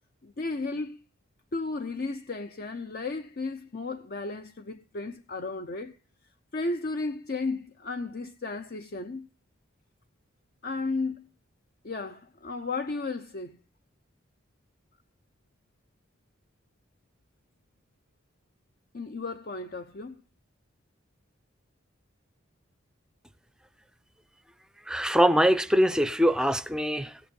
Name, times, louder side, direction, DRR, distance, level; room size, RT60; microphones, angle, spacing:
voice 1, 0.2-1.0 1.5-5.9 6.5-9.3 10.6-11.3 11.8-13.6 18.9-20.1, left 3 dB, 50° left, 0.7 m, -34 dB
voice 2, 24.9-27.2, equal, 5° right, 0.5 m, -23 dB
16.0 x 9.2 x 5.3 m
head